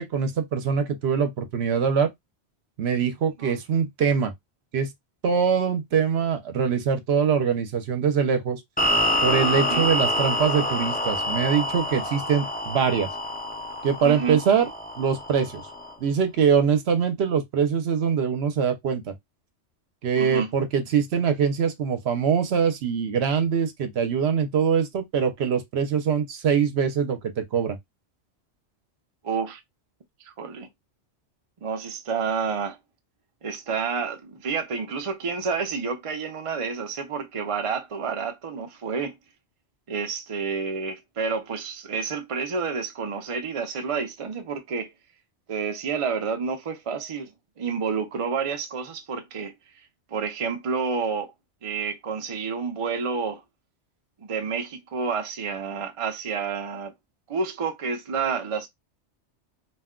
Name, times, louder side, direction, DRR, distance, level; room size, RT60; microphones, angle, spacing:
voice 1, 0.0-2.1 2.8-4.3 4.7-4.9 5.2-8.6 9.2-13.1 13.8-14.7 15.0-15.6 16.0-19.1 20.0-27.8, right 7 dB, 65° right, 0.9 m, -23 dB
sound 1, 8.8-15.9, left 1 dB, 10° left, 0.5 m, -27 dB
voice 2, 9.5-9.9 14.0-14.4 20.2-20.5 29.2-29.6 30.2-30.7 31.6-32.8 33.4-39.2 39.9-44.9 45.5-49.5 50.1-51.3 51.6-53.4 54.2-56.9 57.3-58.7, right 5 dB, 45° right, 0.4 m, -29 dB
2.4 x 2.1 x 3.6 m
omnidirectional pair, 1.2 m